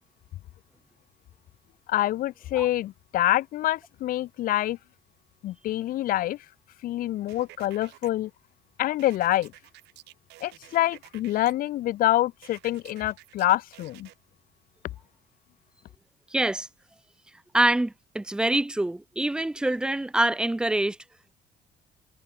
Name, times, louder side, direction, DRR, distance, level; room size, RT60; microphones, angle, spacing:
voice 1, 1.9-4.8 5.4-6.4 6.8-8.3 8.8-9.5 10.4-14.1, left 14 dB, 55° left, 0.4 m, -26 dB
sound 1, 7.3-8.1 9.0-11.5 12.4-14.1, right 19 dB, 85° right, 3.1 m, -51 dB
voice 2, 16.3-16.7 17.5-21.0, right 1 dB, 5° right, 0.4 m, -25 dB
cardioid pair, 110°, 17 cm